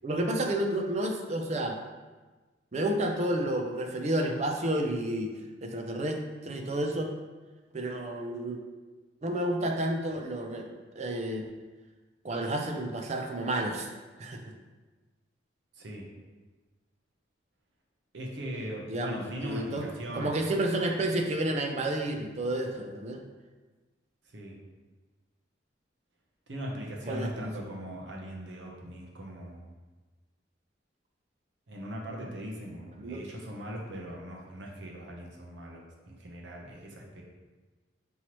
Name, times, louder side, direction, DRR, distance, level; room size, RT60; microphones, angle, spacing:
voice 1, 0.0-1.8 2.7-5.3 5.6-6.2 6.4-7.1 7.7-8.6 9.2-11.5 12.2-13.9 14.2-14.4 18.9-19.9 20.2-23.2 27.1-27.5 33.0-33.2, right 1 dB, 35° right, 3 dB, 0.4 m, -30 dB
voice 2, 15.7-16.1 18.1-20.4 24.2-24.6 26.5-29.8 31.7-37.2, equal, 80° right, -1 dB, 0.8 m, -40 dB
5.5 x 3.0 x 3.0 m, 1.3 s
head